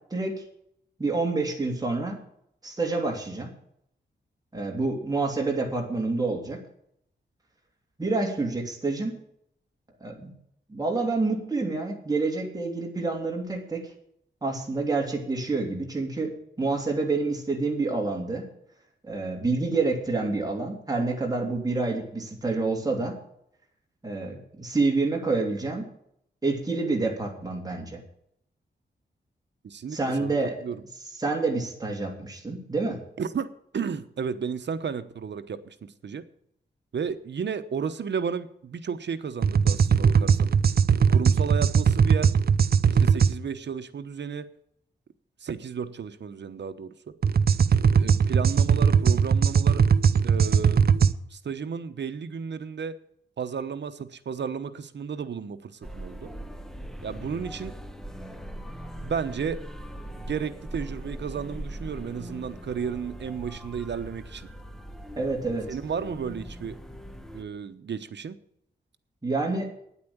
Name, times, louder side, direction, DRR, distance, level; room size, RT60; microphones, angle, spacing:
voice 1, 0.1-0.4 1.0-2.2 2.6-3.5 4.5-6.6 8.0-9.2 10.0-10.3 10.7-13.9 14.4-18.5 19.0-23.2 24.0-25.9 26.4-28.0 29.9-30.5 31.2-33.0 65.2-65.7 69.2-69.7, right 3 dB, 20° right, 0 dB, 3.0 m, -28 dB
voice 2, 29.6-30.3 30.6-30.8 33.2-33.5 33.7-36.2 36.9-40.5 41.1-42.3 42.9-44.5 45.4-46.9 47.9-49.8 50.2-50.9 51.3-53.0 53.4-56.3 57.0-57.8 59.0-59.6 60.2-64.5 65.7-66.8 67.3-68.4, right 6 dB, 70° right, 11 dB, 1.0 m, -33 dB
sound 1, 39.4-43.3 47.2-51.1, right 6 dB, 55° right, 0.6 m, -20 dB
sound 2, 55.8-67.4, equal, ahead, 1.0 m, -40 dB
10.0 x 8.5 x 8.6 m, 0.71 s
wide cardioid pair, 115°, 19 cm